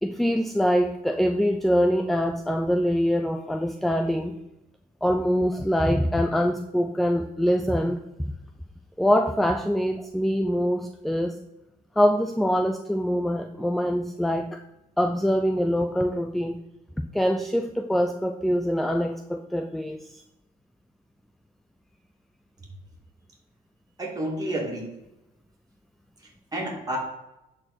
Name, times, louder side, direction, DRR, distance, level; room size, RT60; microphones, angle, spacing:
voice 1, 0.0-4.3 5.0-8.0 9.0-11.4 12.0-14.6 15.0-16.6 17.1-20.0, equal, ahead, 6 dB, 0.5 m, -24 dB
voice 2, 24.0-24.9 26.2-27.0, right 1 dB, 20° right, -2 dB, 2.8 m, -30 dB
10.5 x 4.4 x 4.4 m, 0.92 s
cardioid pair, 110°, 17 cm